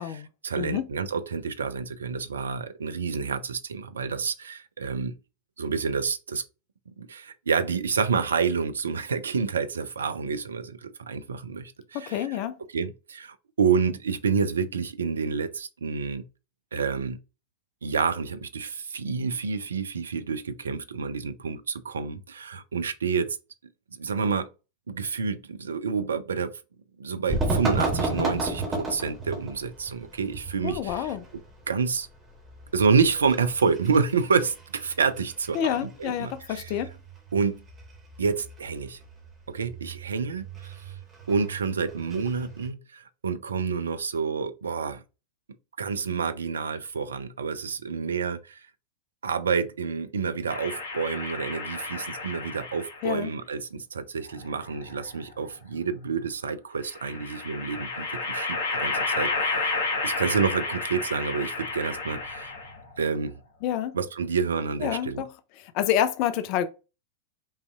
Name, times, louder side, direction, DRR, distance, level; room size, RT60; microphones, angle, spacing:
voice 1, 0.0-5.1 5.6-6.4 7.0-12.4 12.7-16.2 16.7-17.2 17.8-23.4 23.9-24.5 24.9-26.6 27.0-31.2 31.7-32.1 32.7-36.8 37.3-37.6 38.2-39.0 39.5-40.9 41.3-45.0 45.8-48.7 49.2-62.5 63.0-63.3 63.9-65.2, right 5 dB, 70° right, 0.4 m, -28 dB
voice 2, 0.6-0.9 11.9-12.6 30.6-31.3 35.5-36.9 53.0-53.3 63.6-64.0 64.8-65.3 65.6-66.7, left 10 dB, 45° left, 0.4 m, -28 dB
sound 1, 27.3-42.7, right 2 dB, 20° right, 1.4 m, -34 dB
sound 2, 50.5-53.1 54.3-55.3 56.9-62.9, left 3 dB, 60° left, 1.0 m, -31 dB
5.4 x 2.6 x 2.3 m
figure-of-eight pair, 90°, 0 cm